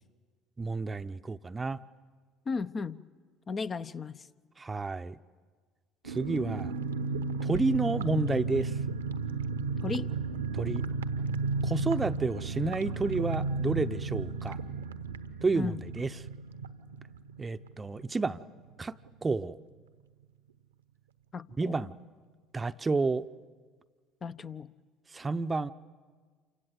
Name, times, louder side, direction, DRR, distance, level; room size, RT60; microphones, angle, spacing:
voice 1, 0.6-1.8 4.6-5.2 6.0-6.7 7.4-8.8 10.5-10.8 11.6-14.6 15.4-16.1 17.4-18.4 18.8-19.6 21.6-21.9 22.5-23.3 25.1-25.7, right 3 dB, 20° right, 0.7 m, -30 dB
voice 2, 2.5-3.0 3.5-4.2 9.8-10.1 15.5-15.8 21.3-21.8 24.2-24.7, left 4 dB, 35° left, 0.8 m, -35 dB
sound 1, 6.0-18.4 18.7-18.8 19.0-19.3, right 4 dB, 80° right, 1.1 m, -33 dB
28.5 x 25.0 x 8.1 m
figure-of-eight pair, 60°, 0 cm